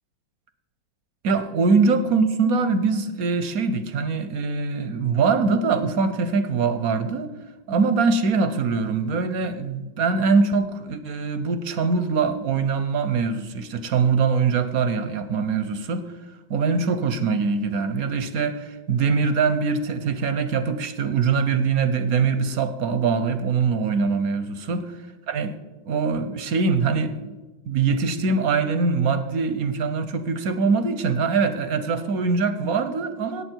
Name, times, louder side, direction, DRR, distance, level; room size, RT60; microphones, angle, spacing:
voice 1, 1.2-7.3 7.7-16.0 16.5-24.9 25.3-25.5 25.8-27.3 27.7-33.4, right 4 dB, 60° right, 11 dB, 1.0 m, -23 dB
18.0 x 8.5 x 4.5 m, 1.3 s
omnidirectional pair, 2.3 m